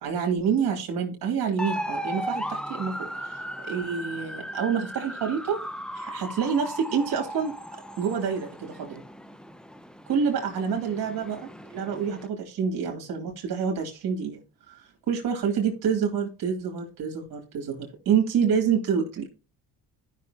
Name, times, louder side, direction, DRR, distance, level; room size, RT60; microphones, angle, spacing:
voice 1, 0.0-5.6 5.9-7.5 8.0-9.0 10.1-14.4 14.7-19.3, right 7 dB, 60° right, 2 dB, 2.8 m, -27 dB
sound 1, 1.6-12.3, equal, ahead, 0.6 m, -37 dB
14.5 x 5.8 x 2.9 m, 0.31 s
cardioid pair, 95°, 39 cm